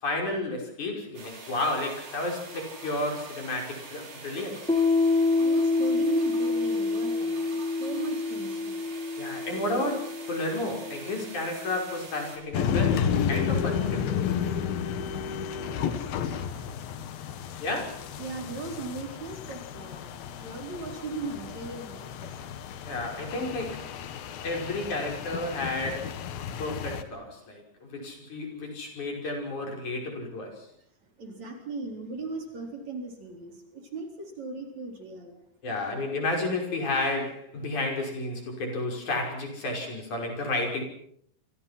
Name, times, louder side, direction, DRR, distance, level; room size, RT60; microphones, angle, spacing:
voice 1, 0.0-4.7 9.2-14.3 17.6-18.1 22.8-23.9 24.4-26.1 26.6-30.7 35.6-40.8, left 2 dB, 55° left, 2 dB, 7.0 m, -32 dB
sound 1, 1.2-12.4, right 3 dB, 85° right, 7.5 m, -45 dB
Piano, 4.7-11.9, left 3 dB, 10° left, 0.4 m, -27 dB
voice 2, 5.4-8.8 15.5-16.6 18.2-22.5 31.2-35.4, right 3 dB, 50° right, 3 dB, 5.2 m, -38 dB
sound 2, 12.5-27.0, left 8 dB, 75° left, 3.4 m, -32 dB
28.5 x 25.5 x 5.9 m, 0.67 s
omnidirectional pair, 4.2 m